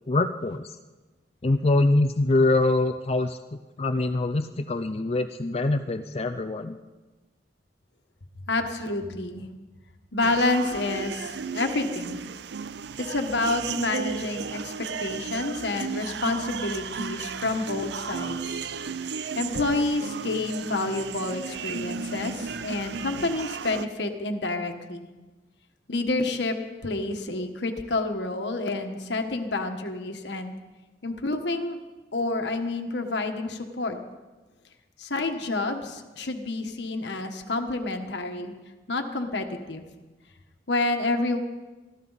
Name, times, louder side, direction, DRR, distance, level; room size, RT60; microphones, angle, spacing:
voice 1, 0.1-0.8 1.4-6.8, left 2 dB, 35° left, 8 dB, 0.5 m, -24 dB
voice 2, 8.5-9.5 10.1-12.2 13.0-18.7 19.0-25.1 25.9-26.6 26.8-30.5 31.0-31.8 32.1-34.0 35.0-38.5 38.9-39.8 40.7-41.4, left 2 dB, 75° left, 5 dB, 1.4 m, -29 dB
sound 1, 10.2-23.9, right 5 dB, 65° right, 0.5 m, -34 dB
24.5 x 14.0 x 4.1 m, 1.2 s
head